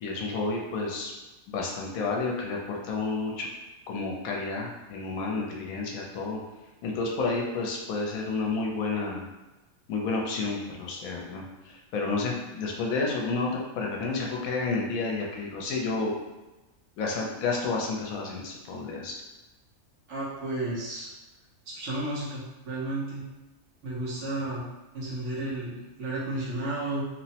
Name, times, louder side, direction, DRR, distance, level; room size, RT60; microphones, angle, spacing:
voice 1, 0.0-1.1 1.5-3.5 3.9-6.4 6.8-9.3 9.9-16.2 17.0-19.2, left 3 dB, 80° left, -1 dB, 1.0 m, -30 dB
voice 2, 20.1-21.1 21.7-23.3 23.8-24.7 24.9-27.1, right 2 dB, 60° right, -6 dB, 1.0 m, -32 dB
3.0 x 2.0 x 2.7 m, 1.1 s
omnidirectional pair, 1.5 m